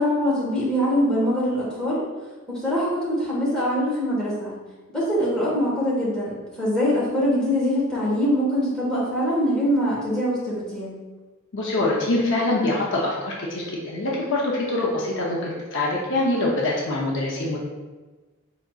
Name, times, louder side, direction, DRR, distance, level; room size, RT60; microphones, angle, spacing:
voice 1, 0.0-2.0 2.5-4.5 4.9-11.0, equal, 5° left, -8 dB, 1.4 m, -23 dB
voice 2, 11.5-17.6, left 2 dB, 55° left, -3 dB, 0.7 m, -24 dB
4.9 x 3.9 x 2.4 m, 1.2 s
head